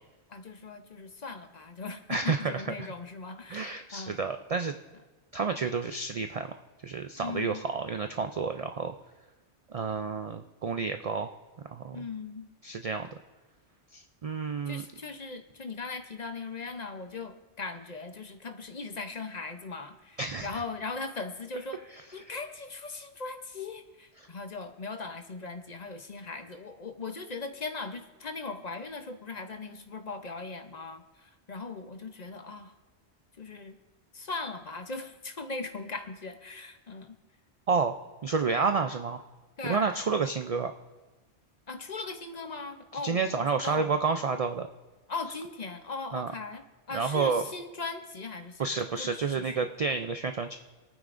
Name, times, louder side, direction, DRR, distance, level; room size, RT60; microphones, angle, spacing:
voice 1, 0.3-4.2 7.2-7.6 11.9-12.5 14.7-32.7 33.4-33.7 34.1-37.2 39.6-40.0 41.7-44.0 45.1-49.7, left 4 dB, 40° left, 7 dB, 0.8 m, -39 dB
voice 2, 2.1-2.9 3.5-4.8 5.3-6.5 6.8-9.0 9.7-11.3 11.7-12.0 12.6-13.1 13.9-14.8 20.2-20.5 37.7-37.9 38.2-39.2 39.6-40.7 43.0-44.7 46.1-46.3 46.9-47.4 48.6-50.6, right 5 dB, 60° right, 7 dB, 0.3 m, -30 dB
27.0 x 9.3 x 2.6 m, 1.2 s
omnidirectional pair, 1.2 m